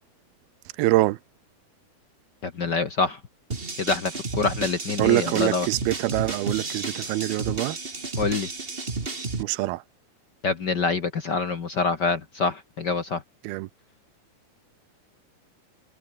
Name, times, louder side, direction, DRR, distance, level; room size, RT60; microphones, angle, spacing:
voice 1, 0.8-1.2 5.0-7.8 9.4-9.8 13.4-13.7, right 19 dB, 90° right, 2.6 m, -24 dB
voice 2, 2.4-3.2 3.8-5.7 8.2-8.5 10.4-13.2, left 4 dB, 55° left, 1.1 m, -26 dB
sound 1, 3.5-9.4, right 3 dB, 25° right, 1.4 m, -32 dB
omnidirectional pair, 4.5 m